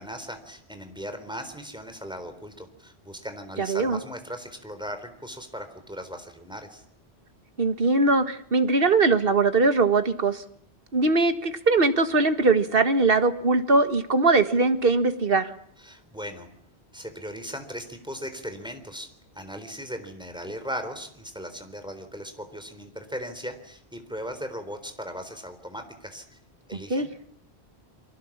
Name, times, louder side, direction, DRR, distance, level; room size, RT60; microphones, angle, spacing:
voice 1, 0.0-6.8 15.8-16.5 16.9-19.1 19.3-26.2 26.7-27.2, equal, 5° right, 7 dB, 3.8 m, -38 dB
voice 2, 3.6-4.0 7.6-10.4 10.9-15.5 26.9-27.1, right 3 dB, 55° right, 9 dB, 1.8 m, -21 dB
29.5 x 23.5 x 7.4 m, 0.64 s
omnidirectional pair, 1.1 m